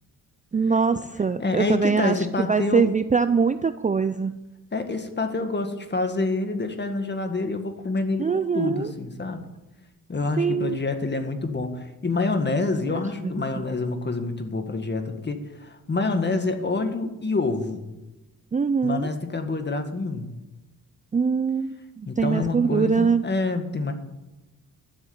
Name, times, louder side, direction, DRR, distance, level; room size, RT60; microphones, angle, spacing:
voice 1, 0.5-4.4 8.2-8.9 10.4-10.8 13.2-13.6 18.5-19.1 21.1-23.2, right 5 dB, 20° right, 11 dB, 0.5 m, -23 dB
voice 2, 1.4-2.9 4.7-9.5 10.1-17.8 18.8-20.3 22.1-23.9, left 3 dB, 30° left, 7 dB, 1.8 m, -27 dB
12.5 x 7.3 x 8.1 m, 1.0 s
cardioid pair, 85°, 37 cm